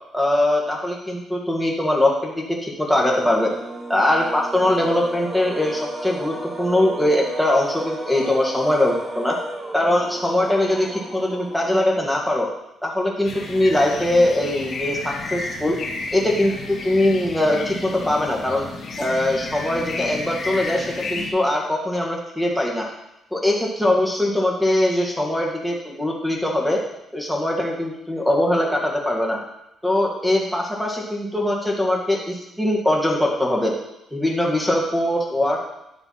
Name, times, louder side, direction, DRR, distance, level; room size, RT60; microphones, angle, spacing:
voice 1, 0.1-3.5 3.9-9.4 9.7-12.5 12.8-15.8 16.1-18.6 19.0-22.9 23.3-26.8 27.1-29.4 29.8-33.7 34.1-35.6, left 1 dB, ahead, -2 dB, 1.8 m, -21 dB
sound 1, 2.8-12.2, right 1 dB, 15° right, 1.3 m, -34 dB
sound 2, 13.2-21.3, left 3 dB, 60° left, 1.5 m, -32 dB
10.0 x 3.5 x 5.6 m, 0.89 s
cardioid pair, 90°, 0 cm